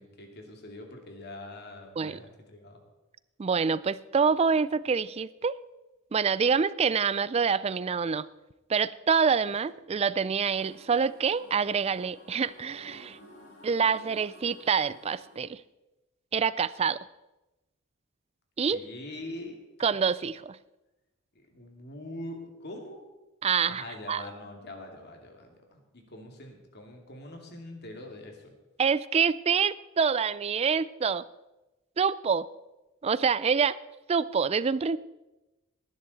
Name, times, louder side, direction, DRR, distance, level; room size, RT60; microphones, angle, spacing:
voice 1, 0.0-2.8 18.7-19.6 21.3-23.0 23.7-28.5, left 1 dB, 50° left, 3 dB, 2.4 m, -43 dB
voice 2, 3.4-5.6 6.1-8.3 8.7-13.2 13.6-15.6 16.3-17.0 18.6-18.8 19.8-20.6 23.4-24.2 28.8-31.2 32.0-32.5 33.0-33.8 34.1-35.0, right 6 dB, 30° right, 18 dB, 0.3 m, -26 dB
sound 1, 10.5-15.4, equal, 70° left, 6.2 m, -53 dB
19.0 x 10.5 x 4.1 m, 1.0 s
head